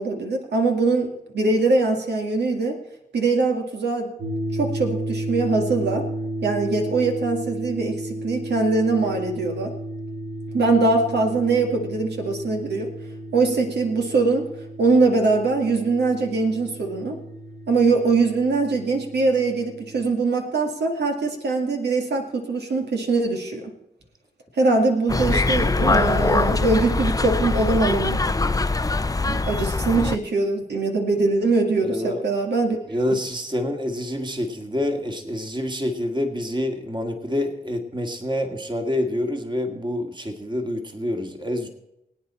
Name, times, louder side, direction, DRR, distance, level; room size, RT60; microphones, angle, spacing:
voice 1, 0.0-2.8 3.1-4.1 4.5-6.1 6.4-9.7 10.5-12.9 13.3-14.5 14.8-17.2 17.7-23.7 24.6-28.3 29.3-32.8 33.1-33.2, right 3 dB, 75° right, 2 dB, 1.9 m, -22 dB
sound 1, 4.2-20.0, right 1 dB, 50° right, 3.2 m, -33 dB
sound 2, 25.1-30.2, left 3 dB, 20° left, 0.6 m, -22 dB
voice 2, 31.8-32.2 32.9-41.7, left 1 dB, 25° right, 5 dB, 2.1 m, -27 dB
23.0 x 8.9 x 4.3 m, 0.89 s
cardioid pair, 55°, 18 cm